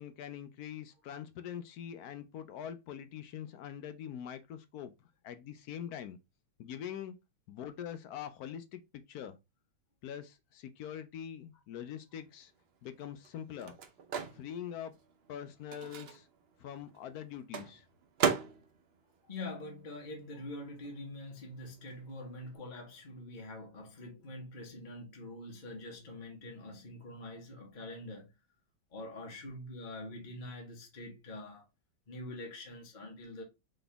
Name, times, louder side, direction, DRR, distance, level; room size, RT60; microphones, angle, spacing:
voice 1, 0.0-4.9 5.2-6.2 6.6-7.1 7.5-8.8 9.1-9.4 10.0-12.5 12.8-13.8 14.3-15.0 15.3-16.3 16.6-17.9, left 9 dB, 75° left, 0.9 m, -43 dB
Microwave oven, 12.3-20.4 20.6-22.6, right 6 dB, 70° right, 0.5 m, -39 dB
voice 2, 19.2-28.3 28.9-31.6 32.1-33.4, left 1 dB, 30° left, 1.2 m, -45 dB
4.0 x 3.8 x 3.4 m
omnidirectional pair, 2.1 m